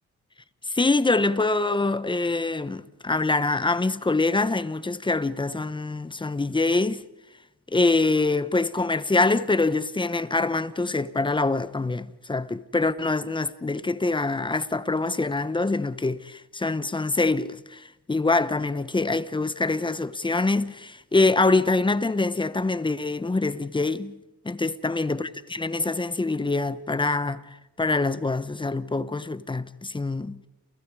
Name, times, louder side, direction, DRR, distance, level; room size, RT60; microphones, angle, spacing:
voice 1, 0.7-7.0 7.7-24.2 24.4-30.4, left 3 dB, 15° left, 1.1 m, -25 dB
29.0 x 29.0 x 4.9 m
cardioid pair, 90°, 30 cm